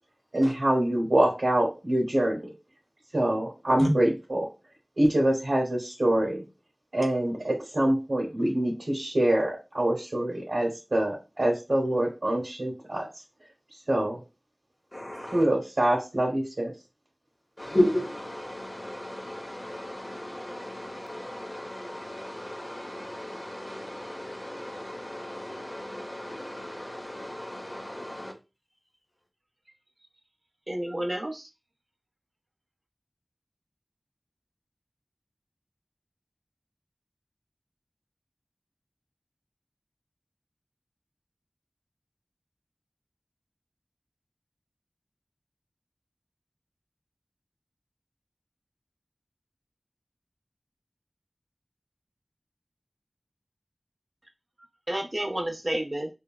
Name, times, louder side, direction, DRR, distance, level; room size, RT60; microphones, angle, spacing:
voice 1, 0.3-2.5 3.1-4.5 5.0-6.4 6.9-13.1 13.9-14.2 15.3-16.7, right 1 dB, 80° right, -3 dB, 0.9 m, -25 dB
voice 2, 14.9-15.4 17.6-28.3, left 1 dB, 40° left, 1 dB, 0.8 m, -34 dB
voice 3, 30.7-31.5 54.9-56.1, right 1 dB, 45° right, 4 dB, 0.5 m, -30 dB
3.2 x 2.3 x 2.2 m, 0.27 s
wide cardioid pair, 50°, 0 cm